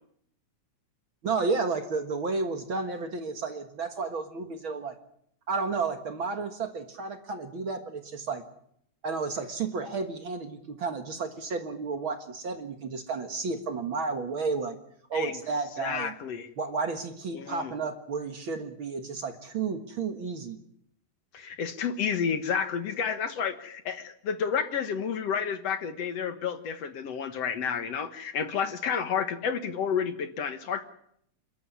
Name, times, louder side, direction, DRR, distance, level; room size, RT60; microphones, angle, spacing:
voice 1, 1.2-4.9 5.5-8.4 9.0-14.8 15.1-16.1 16.6-20.6, right 4 dB, 50° right, 6 dB, 2.0 m, -32 dB
voice 2, 15.8-16.5 17.3-17.7 21.3-30.8, left 7 dB, 60° left, 9 dB, 2.3 m, -30 dB
28.5 x 13.0 x 9.9 m, 0.71 s
omnidirectional pair, 3.4 m